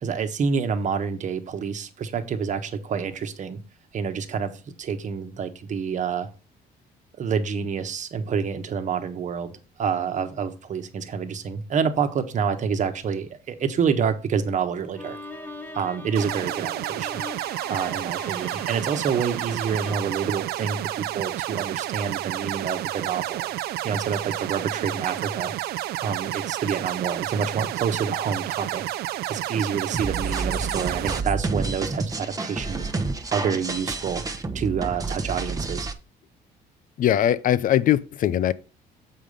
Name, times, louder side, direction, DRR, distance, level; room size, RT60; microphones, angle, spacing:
voice 1, 0.0-3.6 3.9-4.5 4.8-6.3 7.2-15.2 15.7-17.2 17.7-23.5 23.8-25.5 26.0-28.8 29.3-32.9 33.3-34.2 34.5-35.9, right 6 dB, 45° right, 1.2 m, -28 dB
Bowed string instrument, 14.9-21.2, left 2 dB, 10° left, 1.4 m, -41 dB
sound 1, 16.1-31.2, right 14 dB, 70° right, 0.5 m, -30 dB
sound 2, 29.9-35.9, right 3 dB, 20° right, 1.0 m, -29 dB
voice 2, 37.0-38.5, left 11 dB, 55° left, 0.6 m, -21 dB
7.6 x 5.0 x 5.3 m
cardioid pair, 110°, 17 cm